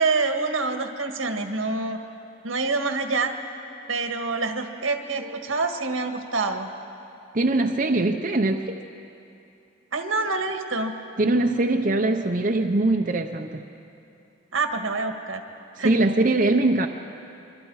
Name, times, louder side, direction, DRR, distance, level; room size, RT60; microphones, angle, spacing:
voice 1, 0.0-2.0 2.4-3.3 3.9-6.7 9.9-10.9 14.5-15.4 15.8-15.9, right 3 dB, 85° right, 5 dB, 1.7 m, -26 dB
voice 2, 7.3-8.8 11.2-13.6 15.8-16.9, right 2 dB, 40° right, 3 dB, 0.7 m, -22 dB
26.0 x 24.0 x 4.8 m, 2.7 s
head